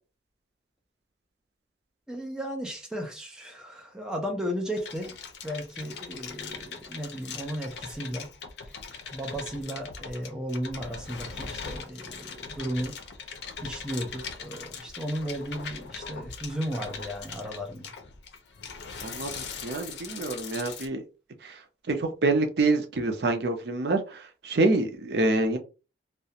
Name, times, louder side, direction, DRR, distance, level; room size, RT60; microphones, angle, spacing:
voice 1, 2.1-5.2 5.4-8.3 9.1-13.0 13.6-17.9, equal, 5° right, 0.5 m, -35 dB
sound 1, 4.8-20.9, left 5 dB, 75° left, 0.5 m, -40 dB
voice 2, 19.0-21.0 21.4-21.5 21.9-25.6, right 2 dB, 65° right, 0.5 m, -26 dB
2.4 x 2.1 x 2.8 m
head